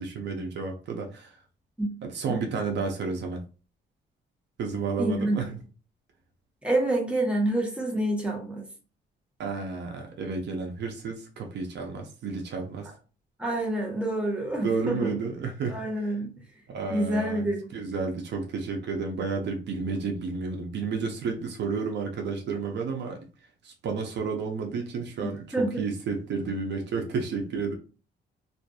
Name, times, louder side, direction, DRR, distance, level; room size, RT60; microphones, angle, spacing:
voice 1, 0.0-1.4 2.0-3.4 4.6-5.5 9.4-12.9 14.6-15.8 16.7-23.2 23.6-27.7, right 4 dB, 60° right, 0.6 m, -31 dB
voice 2, 5.0-5.4 6.6-8.7 13.4-15.1 15.7-16.3 16.9-17.7 25.2-25.7, right 1 dB, 5° right, 1.0 m, -27 dB
2.5 x 2.4 x 2.3 m
cardioid pair, 90°, 20 cm